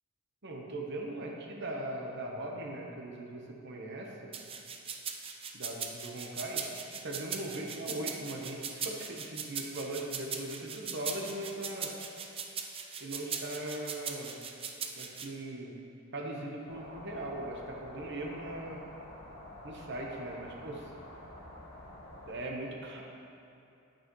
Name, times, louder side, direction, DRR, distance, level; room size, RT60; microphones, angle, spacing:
voice 1, 0.4-4.3 5.5-6.6 7.0-11.9 13.0-14.4 14.9-15.8 16.1-18.8 19.6-20.8 22.2-23.0, right 1 dB, 55° right, 0 dB, 1.1 m, -39 dB
sound 1, 4.3-15.3, right 6 dB, 25° right, 0.5 m, -39 dB
sound 2, 16.7-22.3, left 1 dB, 80° left, 1.9 m, -48 dB
8.9 x 8.7 x 3.1 m, 2.8 s
head